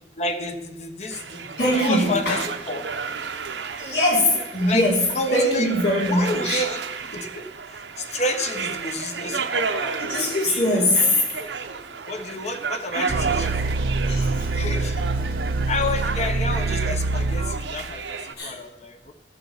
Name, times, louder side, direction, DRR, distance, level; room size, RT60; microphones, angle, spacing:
voice 1, 0.2-2.8 4.7-5.7 6.0-11.0 11.4-11.5 12.1-13.8 14.5-15.0 15.7-19.1, left 2 dB, 40° left, 8 dB, 1.1 m, -30 dB
sound 1, 1.1-18.3, right 5 dB, 90° right, 0.9 m, -32 dB
voice 2, 1.6-2.4 3.8-5.0 5.3-6.6 10.0-11.0 13.0-13.1 14.1-14.5 18.4-18.5, left 1 dB, 65° left, -2 dB, 3.3 m, -22 dB
sound 2, 13.1-18.0, right 3 dB, 55° right, 0.4 m, -25 dB
14.0 x 6.7 x 5.7 m, 0.89 s
head